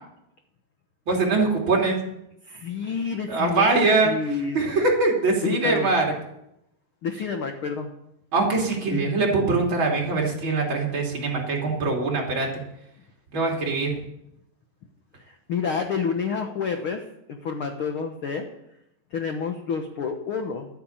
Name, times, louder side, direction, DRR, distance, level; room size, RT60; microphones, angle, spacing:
voice 1, 1.1-2.0 3.3-6.1 8.3-12.5 13.3-14.0, right 3 dB, 35° right, -1 dB, 3.5 m, -23 dB
voice 2, 2.4-3.7 4.0-4.6 5.4-5.9 7.0-7.9 8.9-9.2 15.2-18.4 19.1-20.7, left 5 dB, 80° left, 5 dB, 1.1 m, -29 dB
12.0 x 9.5 x 8.6 m, 0.81 s
omnidirectional pair, 4.1 m